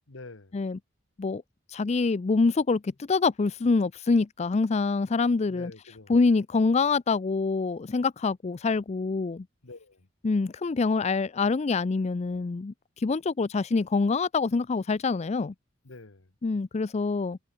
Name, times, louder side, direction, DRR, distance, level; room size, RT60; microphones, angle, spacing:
voice 1, 0.1-0.6 5.5-6.1 9.6-10.1 15.8-16.3, left 3 dB, 90° left, 1.5 m, -46 dB
voice 2, 1.7-5.7 6.1-9.4 10.2-15.5 16.4-17.4, left 4 dB, 35° left, 0.4 m, -25 dB
head